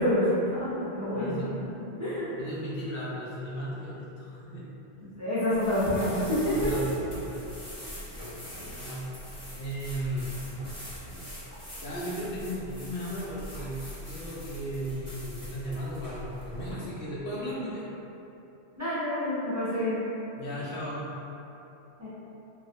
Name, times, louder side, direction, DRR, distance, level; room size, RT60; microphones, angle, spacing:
voice 1, 0.0-1.4 2.0-2.3 5.2-6.5 18.8-20.0 22.0-22.1, left 1 dB, 20° right, -13 dB, 0.7 m, -27 dB
voice 2, 1.1-1.6 2.4-4.7 6.5-7.4 8.6-9.1 9.5-10.7 11.1-11.3 11.8-17.9 20.4-21.1, equal, 65° left, -7 dB, 0.7 m, -36 dB
sound 1, 5.5-16.7, equal, 30° left, 0.9 m, -42 dB
3.0 x 2.3 x 2.8 m, 2.9 s
omnidirectional pair, 1.1 m